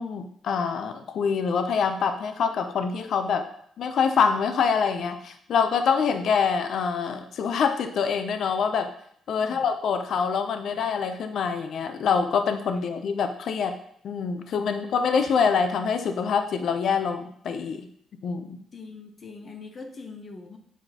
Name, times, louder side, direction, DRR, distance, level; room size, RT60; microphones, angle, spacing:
voice 1, 0.0-3.5 3.8-8.9 9.3-13.8 14.0-17.9 18.2-18.6, left 6 dB, 65° left, 8 dB, 0.6 m, -25 dB
voice 2, 18.7-20.6, left 4 dB, 40° left, 4 dB, 1.0 m, -42 dB
7.8 x 4.5 x 2.9 m, 0.65 s
cardioid pair, 90°, 0 cm